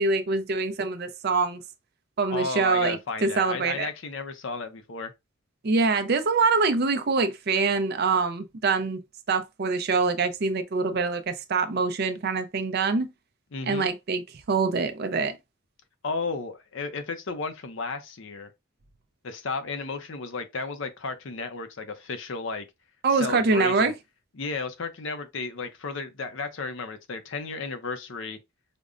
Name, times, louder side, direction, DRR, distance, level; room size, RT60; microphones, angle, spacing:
voice 1, 0.0-1.6 2.2-3.9 5.6-9.0 9.3-13.1 13.7-14.2 14.5-15.4 23.0-23.9, right 4 dB, 50° right, 0.5 m, -24 dB
voice 2, 2.3-5.1 13.5-13.9 16.0-18.5 19.2-22.6 23.1-23.9 24.4-28.4, left 4 dB, 60° left, 0.6 m, -33 dB
5.1 x 2.1 x 2.4 m
head